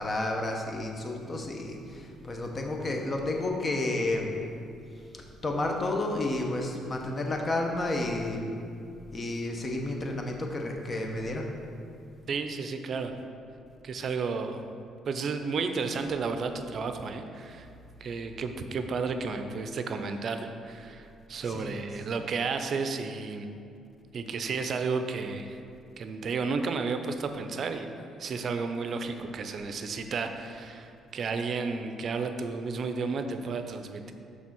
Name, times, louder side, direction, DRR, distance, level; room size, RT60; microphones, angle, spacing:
voice 1, 0.0-4.3 4.9-8.5 9.1-11.5 21.4-21.7, left 2 dB, 35° left, 1 dB, 0.9 m, -31 dB
voice 2, 12.3-13.1 13.8-14.6 15.1-17.7 18.0-23.5 24.1-25.6 26.0-27.9 28.2-34.1, right 4 dB, 55° right, 7 dB, 0.5 m, -32 dB
6.0 x 3.8 x 6.0 m, 2.5 s
cardioid pair, 80°, 0 cm